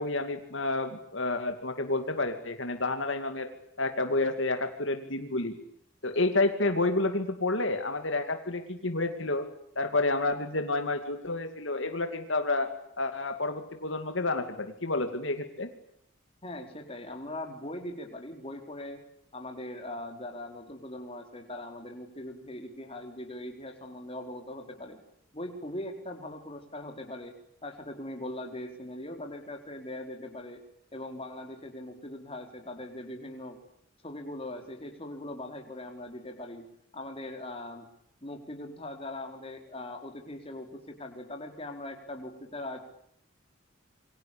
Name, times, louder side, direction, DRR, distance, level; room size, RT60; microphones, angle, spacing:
voice 1, 0.0-3.5 3.8-5.5 6.0-9.5 9.8-12.7 13.0-15.7, left 2 dB, 65° left, 7 dB, 2.6 m, -29 dB
voice 2, 16.4-19.0 19.3-25.0 25.3-27.4 27.6-30.6 30.9-33.6 34.0-36.6 36.9-37.9 38.2-42.8, left 1 dB, 30° left, 4 dB, 4.5 m, -40 dB
27.5 x 24.5 x 8.7 m, 0.70 s
head